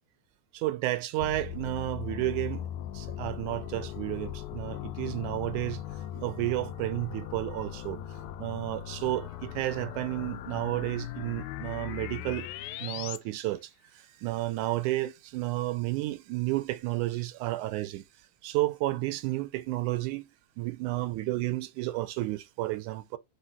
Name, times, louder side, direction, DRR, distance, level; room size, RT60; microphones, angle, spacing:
voice 1, 0.5-2.6 2.9-5.8 6.1-8.0 8.4-12.5 12.8-18.0 18.4-20.3 20.6-23.2, right 17 dB, 80° right, 2.0 m, -32 dB
sound 1, 1.2-13.2, left 11 dB, 80° left, 2.0 m, -39 dB
5.0 x 4.8 x 4.1 m
omnidirectional pair, 3.6 m